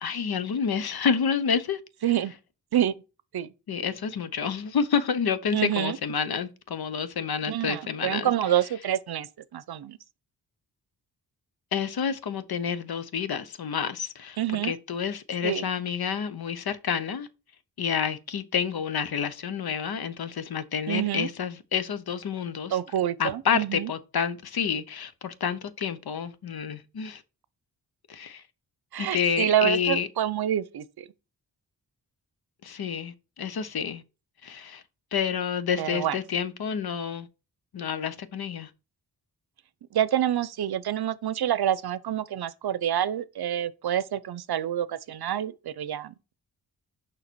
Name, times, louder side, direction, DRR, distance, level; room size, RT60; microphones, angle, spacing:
voice 1, 0.0-1.8 3.7-8.3 11.7-14.4 14.6-17.3 17.8-22.8 23.2-27.2 28.1-28.4 29.0-30.1 32.6-34.0 34.4-34.8 35.1-37.3 37.7-38.7, left 7 dB, 70° left, 0.9 m, -29 dB
voice 2, 5.5-6.0 7.5-9.3 9.5-10.0 14.4-14.7 15.4-15.6 20.9-21.3 22.7-23.9 28.9-31.0 35.8-36.2 39.9-46.3, right 11 dB, 70° right, 0.7 m, -27 dB
6.8 x 5.6 x 4.5 m
wide cardioid pair, 160°, 39 cm